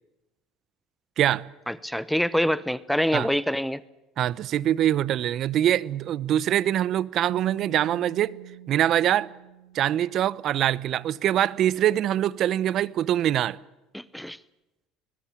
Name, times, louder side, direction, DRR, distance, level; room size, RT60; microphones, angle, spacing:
voice 1, 1.7-3.8 13.9-14.4, equal, ahead, 0.8 m, -25 dB
voice 2, 4.2-8.3 8.7-9.3 9.7-13.6, right 11 dB, 55° right, 0.8 m, -24 dB
sound 1, 7.3-10.5, right 13 dB, 70° right, 2.3 m, -43 dB
21.5 x 20.5 x 8.6 m
supercardioid pair, 95°, 0 cm